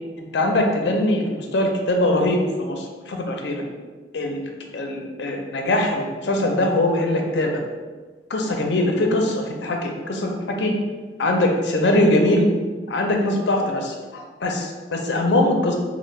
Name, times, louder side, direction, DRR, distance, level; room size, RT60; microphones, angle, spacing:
voice 1, 0.2-3.6 4.1-7.6 8.3-10.7 11.2-12.5 12.9-15.8, left 1 dB, 65° left, 2 dB, 0.5 m, -22 dB
4.2 x 2.1 x 3.1 m, 1.4 s
head